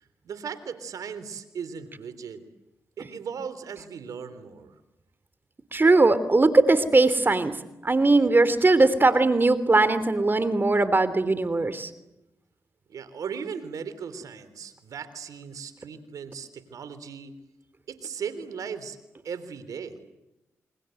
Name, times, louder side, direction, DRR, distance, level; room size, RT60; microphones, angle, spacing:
voice 1, 0.2-2.5 3.0-4.7 12.9-17.3 17.9-19.0 19.2-20.0, right 6 dB, 80° right, 13 dB, 3.5 m, -37 dB
voice 2, 5.7-7.5 7.8-11.9, right 3 dB, 35° right, 14 dB, 3.1 m, -20 dB
29.0 x 25.0 x 7.9 m, 0.94 s
supercardioid pair, 45°, 6 cm